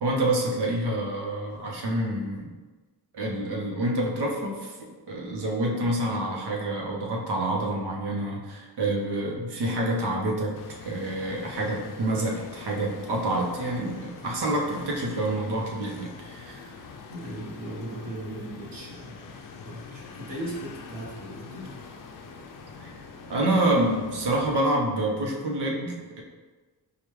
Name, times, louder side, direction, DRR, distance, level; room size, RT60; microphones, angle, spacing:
voice 1, 0.0-2.5 3.1-10.6 10.8-16.7 22.8-22.9 23.3-26.2, right 1 dB, 75° right, -1 dB, 0.9 m, -27 dB
sound 1, 10.5-24.6, left 5 dB, 55° left, 0.5 m, -44 dB
voice 2, 17.1-19.3 19.6-21.8, right 1 dB, 55° right, -4 dB, 1.2 m, -38 dB
4.9 x 2.4 x 3.1 m, 1.3 s
wide cardioid pair, 115°, 40 cm